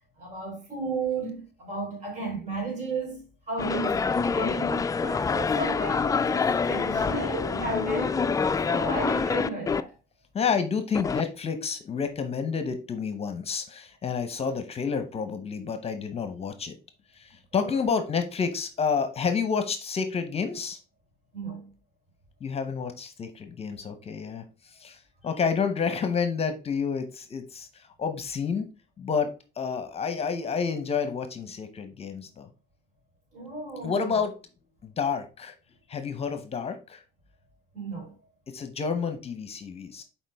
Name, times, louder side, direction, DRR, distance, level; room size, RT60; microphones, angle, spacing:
voice 1, 0.2-8.3 8.7-9.9 17.5-17.8 21.3-21.7 33.3-34.3 37.7-38.1, right 3 dB, 45° right, 4.1 m, -34 dB
sound 1, 3.6-9.8 10.9-11.2, left 5 dB, 20° left, 0.4 m, -26 dB
voice 2, 10.3-16.8 17.2-20.8 22.4-24.4 24.8-25.0 25.2-27.7 28.0-28.7 29.0-29.3 29.6-32.5 33.8-34.3 35.0-35.5 35.9-37.0 38.5-40.0, left 6 dB, 35° left, 0.9 m, -29 dB
7.3 x 4.6 x 3.5 m
cardioid pair, 110°, 17 cm